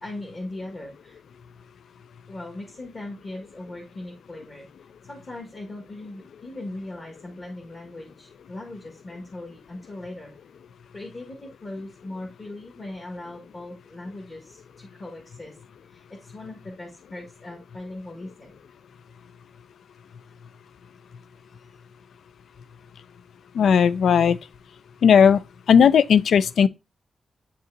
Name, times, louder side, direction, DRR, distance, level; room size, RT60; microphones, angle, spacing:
voice 1, 0.0-1.2 2.3-4.7 5.0-10.3 10.9-15.6 15.9-18.6 21.5-21.6, left 2 dB, 35° left, 1.4 m, -39 dB
voice 2, 23.5-24.4 25.0-25.4 25.7-26.7, left 7 dB, 80° left, 0.3 m, -16 dB
7.6 x 5.3 x 2.6 m
wide cardioid pair, 165°, 0 cm